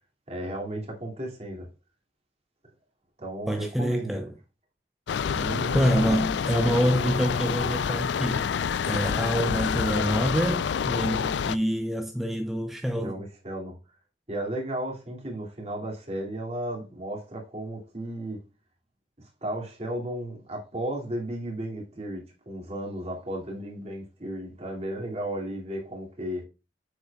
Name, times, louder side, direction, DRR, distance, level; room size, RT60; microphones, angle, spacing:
voice 1, 0.3-1.7 3.2-4.2 5.3-6.3 13.0-13.8 14.3-18.4 19.2-26.4, right 1 dB, 35° right, 2.4 m, -34 dB
voice 2, 3.5-4.3 5.7-8.5 8.9-13.2, equal, ahead, 0.4 m, -26 dB
sound 1, 5.1-11.6, left 7 dB, 70° left, 0.4 m, -27 dB
7.8 x 6.1 x 2.3 m
head